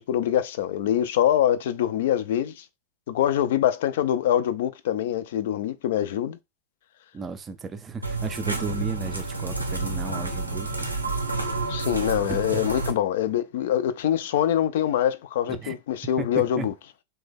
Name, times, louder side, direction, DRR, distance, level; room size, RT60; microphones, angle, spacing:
voice 1, 0.0-2.6 3.1-6.4 11.7-16.7, left 10 dB, 55° left, 0.3 m, -24 dB
voice 2, 7.1-10.9 12.3-12.6 15.5-15.8 16.2-16.7, right 4 dB, 20° right, 0.4 m, -34 dB
Metal Hand Fence, 8.0-12.9, right 3 dB, 85° right, 0.5 m, -29 dB
3.3 x 2.2 x 3.3 m
figure-of-eight pair, 90°, 0 cm